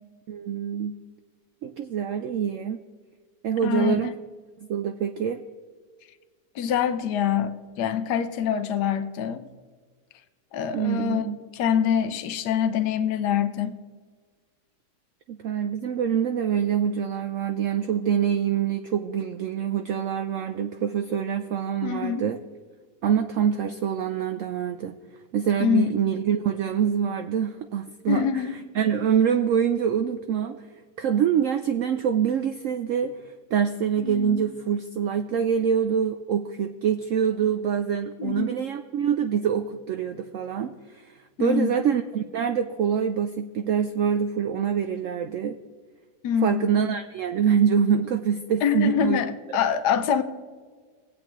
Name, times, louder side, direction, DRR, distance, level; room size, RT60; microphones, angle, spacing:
voice 1, 0.3-1.0 1.6-2.8 3.4-4.2 4.6-5.4 10.7-11.4 15.3-22.4 23.0-25.0 25.3-28.4 28.7-45.6 46.4-49.2, right 8 dB, 70° right, 8 dB, 0.7 m, -25 dB
voice 2, 3.6-4.1 6.5-9.5 10.5-11.3 11.5-13.8 21.8-22.2 25.6-25.9 28.1-28.6 34.0-34.4 38.2-38.5 41.4-41.8 46.2-46.8 48.6-50.2, left 8 dB, 80° left, 10 dB, 1.3 m, -25 dB
20.0 x 8.2 x 3.0 m, 1.5 s
omnidirectional pair, 1.8 m